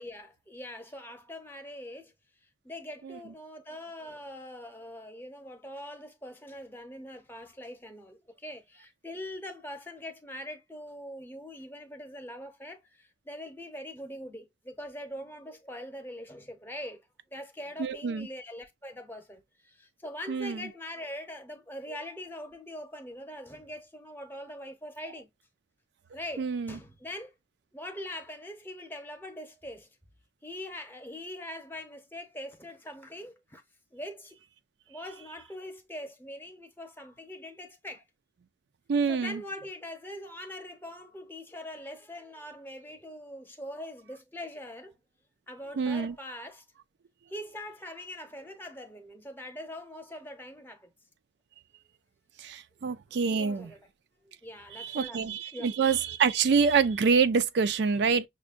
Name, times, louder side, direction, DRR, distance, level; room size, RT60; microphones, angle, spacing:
voice 1, 0.0-2.1 2.6-17.0 17.3-25.3 26.1-27.3 27.7-29.9 30.4-33.6 33.9-34.4 34.9-38.0 39.1-45.0 45.5-46.6 47.3-50.9 53.1-53.9 54.2-55.8, left 1 dB, 10° left, 0.8 m, -42 dB
voice 2, 17.8-18.3 20.3-20.6 26.4-26.8 38.9-39.4 45.8-46.1 52.4-53.7 54.7-58.2, right 5 dB, 70° right, 0.4 m, -26 dB
6.1 x 2.2 x 2.4 m
head